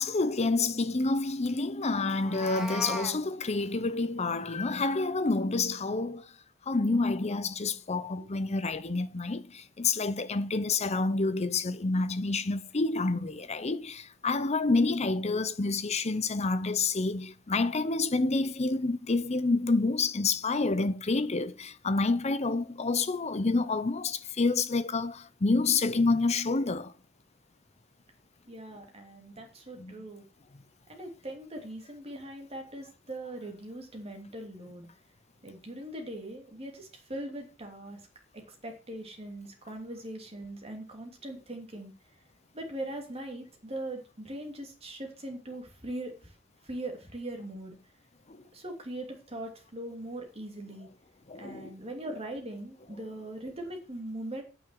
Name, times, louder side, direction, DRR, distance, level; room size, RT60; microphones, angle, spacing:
voice 1, 0.0-6.3 6.7-26.9 29.8-29.9 48.3-48.4 51.3-51.7, left 3 dB, 35° left, 0.7 m, -28 dB
Meow, 2.1-3.2, equal, 5° right, 1.3 m, -37 dB
voice 2, 28.5-30.2 30.9-34.9 35.4-38.0 38.3-41.9 42.5-46.3 46.6-47.8 48.5-50.9 51.4-54.4, right 1 dB, 30° right, 3.0 m, -40 dB
9.2 x 6.9 x 7.7 m
head